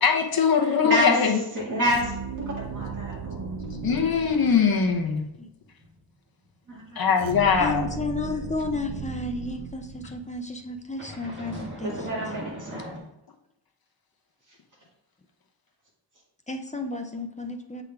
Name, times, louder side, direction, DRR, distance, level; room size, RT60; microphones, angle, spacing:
voice 1, 0.0-1.4 3.8-5.3 7.0-7.9, left 6 dB, 50° left, 2 dB, 0.9 m, -21 dB
voice 2, 0.6-3.5 6.7-7.1 11.8-12.8, equal, 40° right, -4 dB, 2.2 m, -29 dB
sound 1, 1.8-5.2 7.2-10.4, right 5 dB, 80° right, 0.7 m, -36 dB
sound 2, 2.5-4.4 4.7-5.0 5.3-9.0 9.9-13.0, equal, 25° right, 1.7 m, -43 dB
voice 3, 7.6-12.1 16.5-17.8, left 3 dB, 15° left, 5 dB, 0.4 m, -32 dB
7.8 x 3.7 x 3.5 m, 0.87 s
wide cardioid pair, 170°, 45 cm